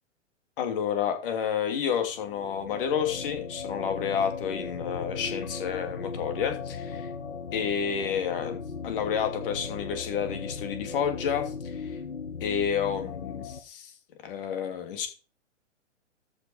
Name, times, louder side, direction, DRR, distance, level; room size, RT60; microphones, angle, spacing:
voice 1, 0.6-7.1 7.5-12.0 12.4-13.9 14.2-15.1, left 8 dB, 45° left, 6 dB, 2.8 m, -30 dB
sound 1, 2.1-13.6, left 5 dB, 90° left, 1.2 m, -37 dB
13.5 x 5.9 x 4.6 m, 0.37 s
figure-of-eight pair, 120°, 37 cm